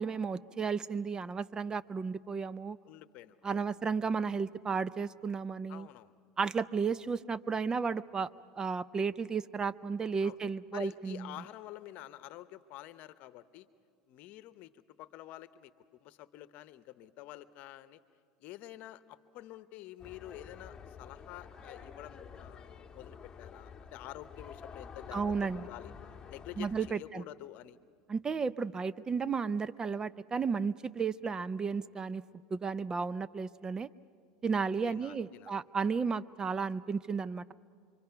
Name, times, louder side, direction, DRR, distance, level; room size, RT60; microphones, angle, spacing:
voice 1, 0.0-2.8 3.4-5.9 6.4-8.3 8.6-11.3 25.1-25.6 26.6-27.2 28.1-32.2 32.5-33.9 34.4-37.5, right 5 dB, 25° right, 18 dB, 0.5 m, -33 dB
voice 2, 2.8-3.8 5.7-6.2 10.2-10.4 10.7-13.7 14.1-18.0 18.4-25.9 26.3-27.8 34.8-35.6, left 14 dB, 60° left, 14 dB, 0.9 m, -49 dB
sound 1, 20.0-26.9, left 6 dB, 25° left, 1.3 m, -49 dB
27.0 x 24.5 x 5.8 m, 2.2 s
supercardioid pair, 100°, 3 cm